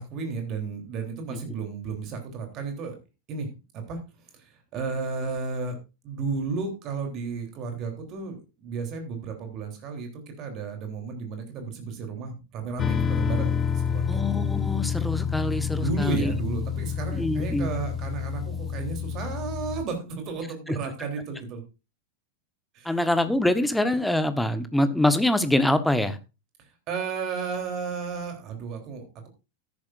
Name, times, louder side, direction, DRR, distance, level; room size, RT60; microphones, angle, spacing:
voice 1, 0.0-3.0 3.3-3.5 3.7-4.0 4.3-5.8 6.0-14.2 15.7-21.6 22.7-22.9 26.9-29.3, right 4 dB, 35° right, 4 dB, 3.4 m, -33 dB
sound 1, 12.8-19.8, left 7 dB, 20° left, 0.6 m, -28 dB
voice 2, 14.1-16.3 17.1-17.7 20.7-20.8 22.8-26.2, left 1 dB, 5° left, 12 dB, 1.1 m, -24 dB
13.5 x 10.5 x 2.6 m, 0.29 s
figure-of-eight pair, 90°, 0 cm